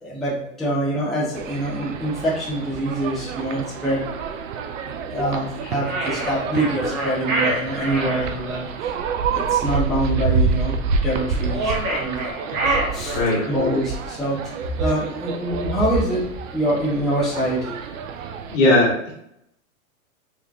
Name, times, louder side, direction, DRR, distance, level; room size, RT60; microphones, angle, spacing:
voice 1, 0.0-4.0 5.0-9.0 9.3-10.8 11.0-12.3 12.7-13.2 13.5-17.8, right 1 dB, ahead, -8 dB, 0.7 m, -25 dB
sound 1, 1.3-18.6, right 5 dB, 65° right, 0.6 m, -28 dB
sound 2, 5.8-8.2 11.4-13.6, right 2 dB, 25° right, 0.9 m, -26 dB
voice 2, 18.5-19.1, left 2 dB, 60° left, -2 dB, 1.5 m, -18 dB
3.7 x 3.1 x 2.3 m, 0.74 s
hypercardioid pair, 130°, 43 cm